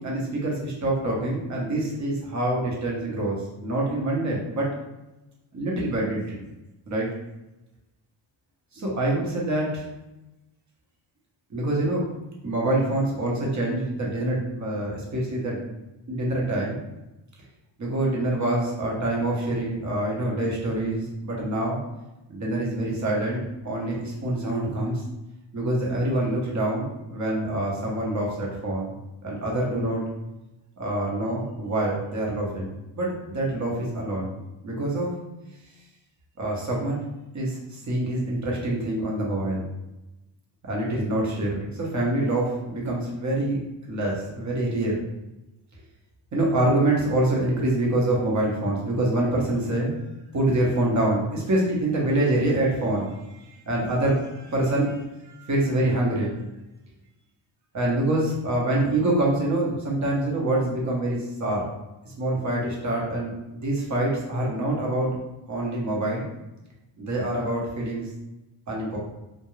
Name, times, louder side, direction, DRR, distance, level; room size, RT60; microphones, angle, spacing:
voice 1, 0.0-4.7 5.5-6.5 6.9-7.1 8.7-9.8 11.5-12.0 12.4-15.7 16.1-16.8 17.8-21.8 22.3-25.0 25.5-28.9 29.2-30.0 30.8-32.7 33.0-34.3 34.6-35.1 36.4-37.0 37.3-39.6 40.6-43.6 43.9-45.0 46.3-50.0 50.3-55.0 55.3-56.4 57.7-61.7 62.0-65.2 65.5-66.3 67.0-68.1 68.7-69.0, right 1 dB, 35° right, -3 dB, 0.9 m, -26 dB
2.4 x 2.2 x 3.0 m, 0.98 s
cardioid pair, 110°, 47 cm